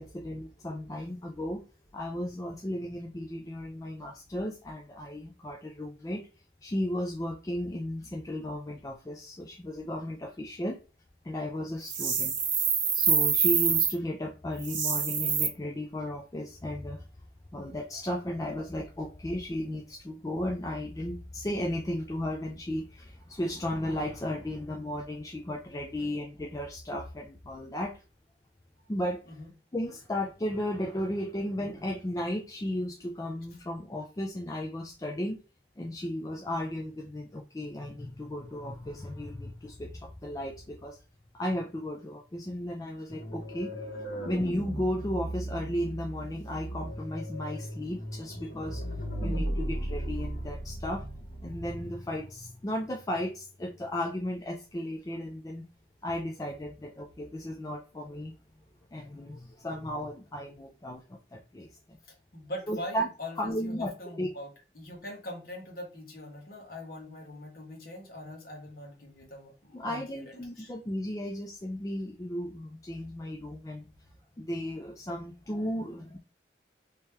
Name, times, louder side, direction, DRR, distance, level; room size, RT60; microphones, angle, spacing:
voice 1, 0.0-1.6 1.9-6.2 6.6-10.8 11.2-12.4 12.9-17.0 17.5-27.9 28.9-29.4 29.7-35.4 35.8-41.0 41.3-43.7 44.2-48.8 49.2-51.1 51.4-55.6 56.0-58.3 58.9-61.0 61.3-62.0 62.7-63.1 63.4-63.9 64.2-64.3 69.7-73.9 74.4-76.2, left 1 dB, 20° left, 1 dB, 0.3 m, -35 dB
sound 1, 11.8-13.9 14.6-15.5, right 6 dB, 80° right, 0.9 m, -26 dB
sound 2, 43.1-51.9, right 1 dB, 80° left, 1.5 m, -36 dB
voice 2, 62.1-64.5 64.7-70.7, left 1 dB, 50° left, 0 dB, 1.2 m, -42 dB
3.2 x 2.9 x 3.3 m, 0.33 s
head